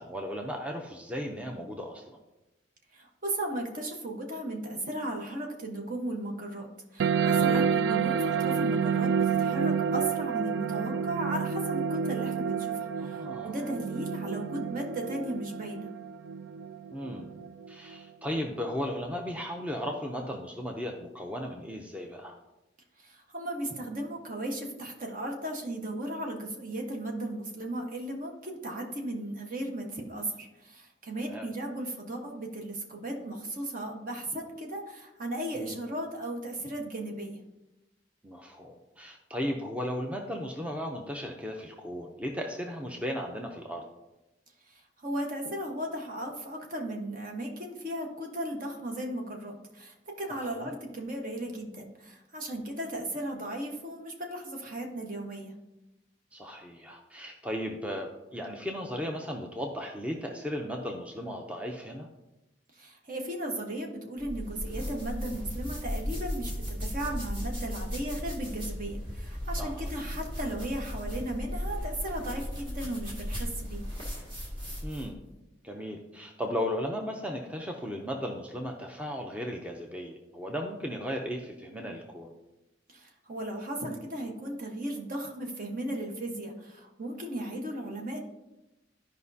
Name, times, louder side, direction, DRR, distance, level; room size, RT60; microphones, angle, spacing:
voice 1, 0.0-2.2 13.0-13.7 16.9-17.3 17.7-22.3 31.3-31.5 35.5-35.8 38.2-43.8 50.3-50.7 56.3-62.1 69.6-69.9 74.8-75.2 75.6-82.3, equal, 5° right, 2 dB, 0.6 m, -36 dB
voice 2, 2.9-15.9 23.0-37.4 44.7-55.5 62.7-73.8 82.9-88.2, right 1 dB, 50° right, 2 dB, 1.2 m, -36 dB
sound 1, 7.0-18.0, right 6 dB, 85° right, 0.3 m, -29 dB
sound 2, 64.2-75.1, equal, 30° right, 2.0 m, -36 dB
13.0 x 5.1 x 2.7 m, 0.97 s
head